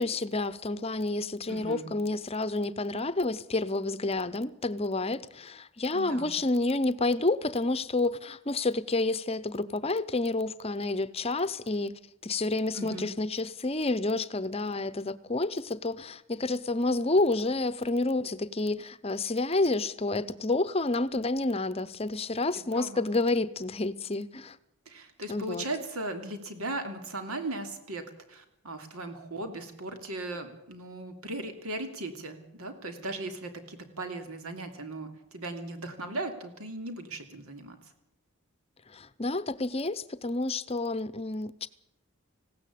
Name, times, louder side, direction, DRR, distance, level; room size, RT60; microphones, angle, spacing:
voice 1, 0.0-11.9 12.2-24.6 25.3-25.7 38.9-41.7, left 2 dB, 25° left, 0.7 m, -29 dB
voice 2, 1.5-1.9 5.9-6.3 12.7-13.1 22.7-23.1 24.9-37.8, right 2 dB, 85° right, 2.9 m, -38 dB
19.5 x 16.5 x 8.5 m
head